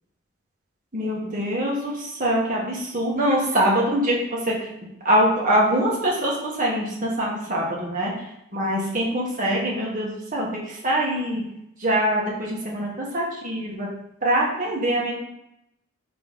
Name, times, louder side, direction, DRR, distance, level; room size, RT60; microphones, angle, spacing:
voice 1, 0.9-4.2 4.4-4.6 5.0-8.1 8.5-11.4 11.8-13.9 14.2-15.1, right 1 dB, 35° right, -4 dB, 1.5 m, -23 dB
5.3 x 3.3 x 5.3 m, 0.82 s
head